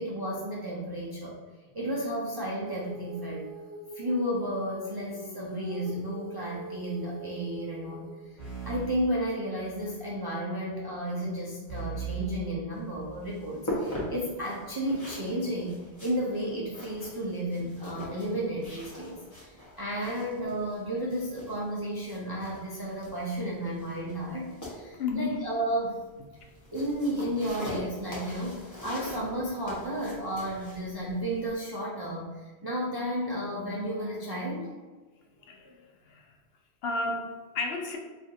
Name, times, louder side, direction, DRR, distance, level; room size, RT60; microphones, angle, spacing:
voice 1, 0.0-1.4 1.7-3.5 3.9-8.4 8.6-26.0 26.7-34.8, equal, 40° right, -5 dB, 0.3 m, -33 dB
Female singing, 2.7-8.4, right 3 dB, 85° right, 0.9 m, -43 dB
sound 1, 8.4-10.0 11.7-13.4, right 6 dB, 40° left, 1.1 m, -39 dB
sound 2, 12.7-31.5, left 1 dB, 20° left, 0.7 m, -42 dB
voice 2, 25.0-25.4 35.4-36.3 36.8-38.0, left 3 dB, 70° left, 2 dB, 0.8 m, -33 dB
2.6 x 2.4 x 3.9 m, 1.3 s
omnidirectional pair, 1.1 m